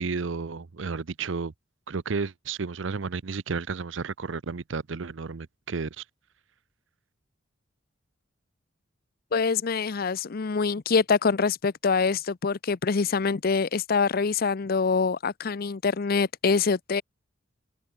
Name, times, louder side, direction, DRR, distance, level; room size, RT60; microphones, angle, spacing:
voice 1, 0.0-1.5 1.9-6.0, right 4 dB, 70° right, 0.7 m, -32 dB
voice 2, 9.3-17.0, left 5 dB, 50° left, 0.6 m, -25 dB
head